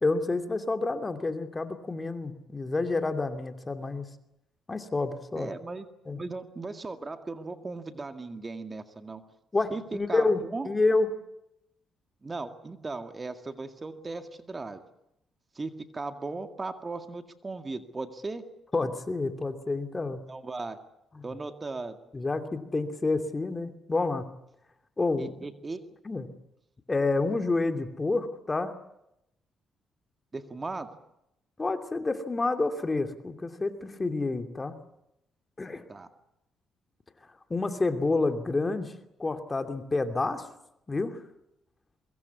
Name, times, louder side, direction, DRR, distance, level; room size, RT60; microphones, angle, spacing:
voice 1, 0.0-4.1 4.7-5.5 6.1-6.2 9.5-11.1 18.7-20.3 21.1-21.2 22.1-24.3 25.0-25.5 26.0-26.3 26.9-28.7 31.6-34.8 35.6-35.8 37.5-38.9 39.2-40.5 40.9-41.2, left 3 dB, 25° left, 7 dB, 2.7 m, -29 dB
voice 2, 5.4-5.9 6.1-9.2 9.7-10.7 12.2-14.8 15.6-18.4 20.3-20.8 21.2-22.0 25.2-25.8 30.3-30.9 35.9-36.1, right 3 dB, 25° right, 7 dB, 2.0 m, -37 dB
23.5 x 22.5 x 8.4 m, 0.82 s
cardioid pair, 90°, 0 cm